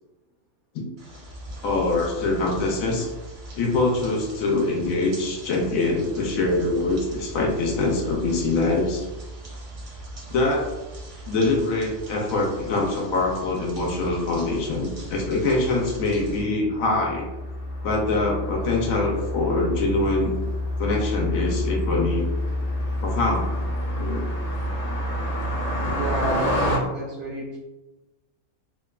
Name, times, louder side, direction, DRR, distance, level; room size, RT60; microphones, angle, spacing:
sound 1, 1.0-16.4, right 1 dB, 45° right, 0.7 m, -39 dB
voice 1, 1.6-3.1 3.6-9.1 10.3-10.7 11.3-17.3 17.8-20.4 20.8-22.3 23.0-23.7 24.0-24.3, left 2 dB, 75° left, 0 dB, 0.9 m, -24 dB
Car passing by, 16.6-26.8, left 1 dB, 55° left, 0.4 m, -28 dB
voice 2, 25.9-27.6, right 2 dB, 90° right, -5 dB, 1.1 m, -31 dB
2.9 x 2.2 x 2.2 m, 1.1 s
omnidirectional pair, 1.5 m